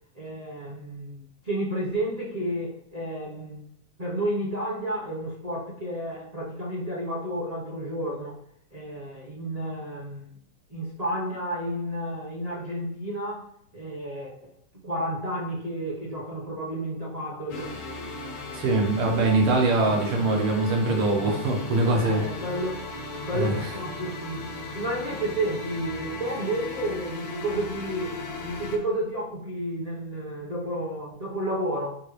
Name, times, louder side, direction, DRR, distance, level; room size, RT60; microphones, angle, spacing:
voice 1, 0.1-3.6 4.0-8.4 8.7-10.3 10.7-13.5 13.7-14.5 14.8-17.8 21.9-22.9 23.2-32.0, right 1 dB, 30° right, -5 dB, 0.8 m, -31 dB
sound 1, 17.5-28.8, left 3 dB, 60° left, 1.7 m, -36 dB
voice 2, 18.5-22.2 23.3-23.7, right 2 dB, 80° right, 1 dB, 2.3 m, -23 dB
11.0 x 3.7 x 3.3 m, 0.67 s
omnidirectional pair, 2.3 m